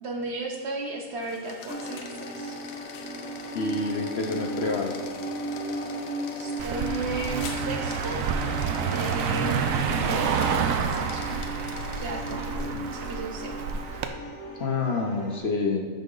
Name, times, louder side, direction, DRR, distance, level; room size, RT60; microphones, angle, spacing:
voice 1, 0.0-2.6 6.4-8.2 8.8-11.4 12.0-13.6 13.9-14.0, right 3 dB, 55° right, 1 dB, 1.1 m, -35 dB
sound 1, 1.1-12.9, left 6 dB, 75° left, 1.1 m, -42 dB
sound 2, 1.7-15.4, right 1 dB, 5° left, 0.8 m, -36 dB
voice 2, 3.5-5.0 12.6-12.9 14.6-15.9, left 3 dB, 55° left, 1 dB, 0.9 m, -28 dB
Car passing by, 6.6-14.1, right 6 dB, 75° right, 1.0 m, -28 dB
9.2 x 5.0 x 3.8 m, 1.3 s
omnidirectional pair, 1.5 m